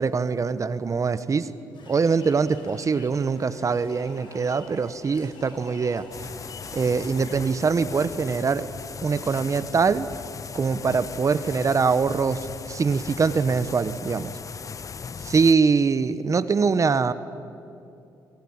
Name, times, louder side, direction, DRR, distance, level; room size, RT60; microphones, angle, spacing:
voice 1, 0.0-1.5 1.8-6.1 6.7-8.7 9.0-10.1 10.5-14.3 15.2-17.1, right 5 dB, 40° right, 14 dB, 1.1 m, -23 dB
sound 1, 1.7-7.3, left 3 dB, 65° left, 5.6 m, -49 dB
sound 2, 6.1-15.5, left 6 dB, 40° left, 0.7 m, -38 dB
26.0 x 21.5 x 8.9 m, 2.7 s
supercardioid pair, 75°, 8 cm